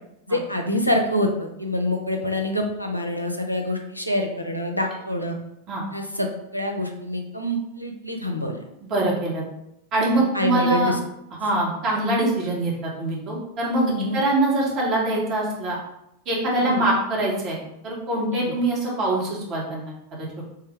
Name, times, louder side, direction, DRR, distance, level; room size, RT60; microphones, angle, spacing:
voice 1, 0.3-5.4 5.9-8.6 10.1-11.0 13.7-14.2 16.6-16.9 18.3-18.5, left 1 dB, 90° left, 2 dB, 0.5 m, -26 dB
voice 2, 8.8-9.4 9.9-10.9 11.4-15.8 16.2-17.6 17.8-20.4, right 2 dB, 35° right, -4 dB, 1.2 m, -24 dB
3.2 x 2.2 x 3.6 m, 0.82 s
figure-of-eight pair, 90°, 0 cm